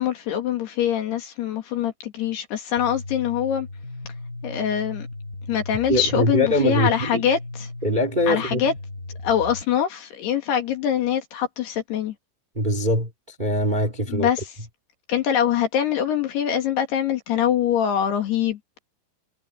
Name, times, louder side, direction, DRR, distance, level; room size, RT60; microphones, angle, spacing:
voice 1, 0.0-3.7 4.4-5.1 5.5-7.7 8.3-8.7 9.2-12.1 14.1-14.5 15.1-18.6, left 9 dB, 60° left, 3.6 m, -24 dB
sound 1, 2.8-9.6, left 2 dB, 20° left, 5.5 m, -36 dB
voice 2, 5.9-7.3 7.8-8.7 12.5-14.3, equal, 35° right, 0.7 m, -23 dB
omnidirectional pair, 5.8 m